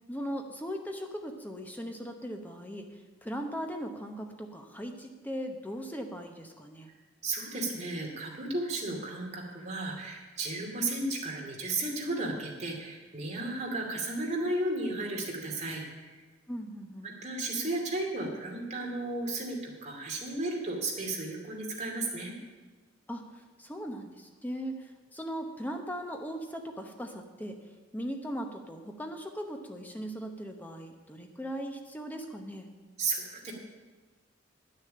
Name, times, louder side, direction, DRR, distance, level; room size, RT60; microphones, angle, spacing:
voice 1, 0.1-6.9 16.5-17.1 23.1-27.6 27.9-32.7, equal, 10° left, 4 dB, 0.8 m, -39 dB
voice 2, 7.2-16.2 17.0-22.4 33.0-33.5, right 2 dB, 35° right, -1 dB, 2.4 m, -34 dB
10.5 x 6.6 x 8.6 m, 1.3 s
head